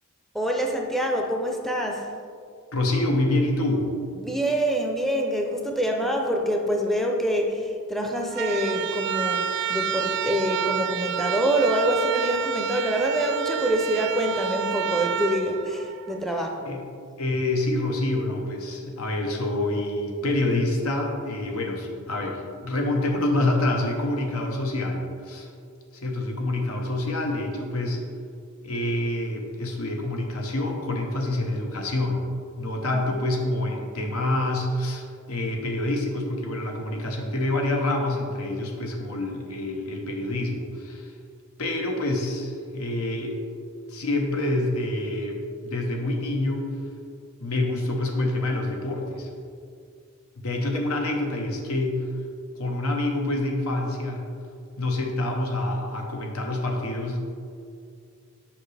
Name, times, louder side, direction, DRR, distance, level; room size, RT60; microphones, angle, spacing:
voice 1, 0.3-2.2 4.2-16.7 32.9-33.0, equal, ahead, 1 dB, 0.5 m, -26 dB
voice 2, 2.7-3.9 16.6-16.8 17.2-25.5 25.9-28.0 28.6-32.2 32.6-41.1 41.6-43.4 43.9-46.7 47.4-49.3 50.4-52.1 52.5-54.2 54.8-57.2, left 1 dB, 90° left, 2 dB, 0.9 m, -27 dB
sound 1, 8.3-16.4, right 8 dB, 55° right, 0.3 m, -29 dB
7.2 x 5.2 x 3.3 m, 2.3 s
head